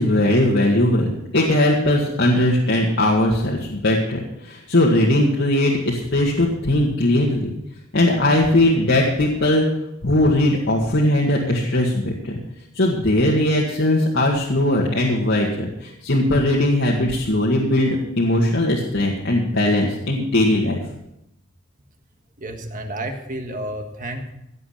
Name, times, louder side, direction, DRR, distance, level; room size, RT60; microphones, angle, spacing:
voice 1, 0.0-7.5 7.9-9.6 10.0-12.4 12.7-17.9 18.2-20.8, left 1 dB, 60° left, -3 dB, 2.0 m, -19 dB
voice 2, 22.4-24.3, right 1 dB, 40° right, 4 dB, 1.7 m, -31 dB
16.5 x 7.8 x 5.9 m, 0.81 s
head